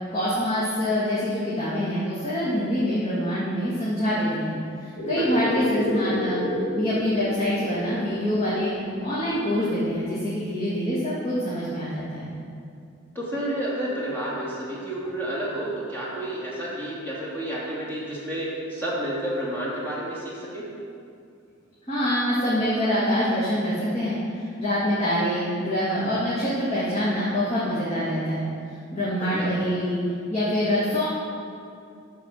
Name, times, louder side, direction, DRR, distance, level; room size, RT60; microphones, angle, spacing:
voice 1, 0.1-4.5 4.8-6.4 6.7-8.7 9.0-12.3 21.9-24.2 24.6-28.5 28.9-30.0 30.3-31.1, equal, 30° left, -9 dB, 2.0 m, -25 dB
sound 1, 4.9-10.1, equal, 60° left, 2.8 m, -31 dB
voice 2, 13.1-20.6 29.2-29.5, right 1 dB, 10° left, -7 dB, 2.8 m, -30 dB
13.0 x 4.9 x 6.3 m, 2.5 s
head